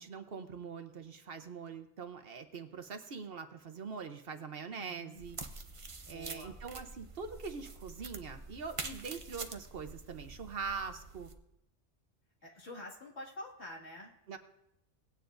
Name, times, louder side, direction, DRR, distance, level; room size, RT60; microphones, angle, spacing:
voice 1, 0.0-5.4 6.1-11.3 14.3-14.4, right 5 dB, 55° right, 7 dB, 1.0 m, -43 dB
voice 2, 4.8-5.2 6.0-6.6 12.4-14.1, left 1 dB, 65° left, -2 dB, 2.4 m, -47 dB
sound 1, 5.2-11.3, right 3 dB, 35° right, 0.6 m, -46 dB
18.5 x 9.2 x 2.6 m, 0.83 s
omnidirectional pair, 1.2 m